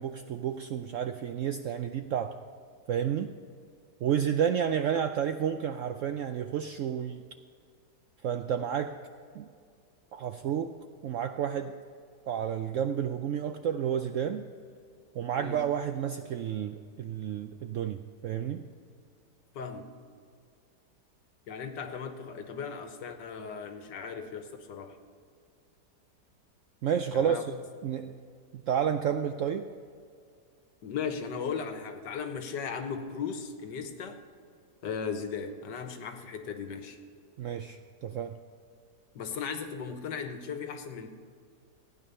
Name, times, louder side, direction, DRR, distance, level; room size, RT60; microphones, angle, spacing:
voice 1, 0.0-2.3 2.9-3.3 4.0-7.2 8.2-8.9 9.3-9.5 10.1-10.7 11.0-11.7 12.3-14.5 15.2-18.6 26.8-27.4 27.8-28.1 28.5-29.6 37.4-38.4, right 8 dB, 75° right, 8 dB, 0.7 m, -30 dB
voice 2, 19.5-19.9 21.5-25.0 27.1-27.6 30.8-34.2 34.8-37.0 39.1-41.1, left 6 dB, 85° left, 7 dB, 1.7 m, -37 dB
15.0 x 9.6 x 5.5 m, 2.2 s
omnidirectional pair, 1.8 m